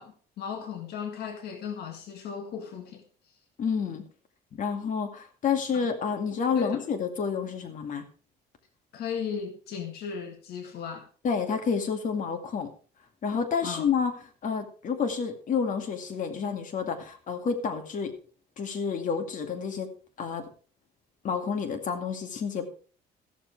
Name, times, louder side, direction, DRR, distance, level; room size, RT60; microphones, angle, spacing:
voice 1, 0.0-3.0 5.7-5.9 6.1-6.3 6.6-6.8 8.9-11.0 13.6-13.9, left 6 dB, 70° left, 1.8 m, -36 dB
voice 2, 3.6-4.0 4.5-8.0 11.2-12.7 13.2-14.1 14.4-18.1 18.6-19.9 20.2-20.5 21.2-22.7, left 6 dB, 50° left, 2.2 m, -29 dB
14.5 x 7.4 x 4.7 m
cardioid pair, 110°, 17 cm